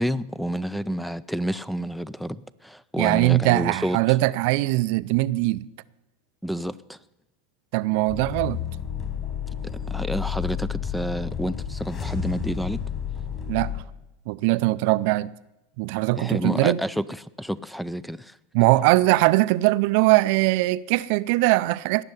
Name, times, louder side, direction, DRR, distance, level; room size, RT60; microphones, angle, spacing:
voice 1, 0.0-4.0 6.4-7.0 9.6-12.8 16.2-18.4, equal, ahead, 0.5 m, -29 dB
voice 2, 3.0-5.7 7.7-8.6 13.5-13.8 14.3-15.3 15.8-16.8 18.5-22.0, right 19 dB, 60° right, 0.5 m, -21 dB
sound 1, 8.1-13.8, left 8 dB, 30° left, 3.5 m, -31 dB
18.0 x 6.7 x 9.8 m
hypercardioid pair, 115°, 0 cm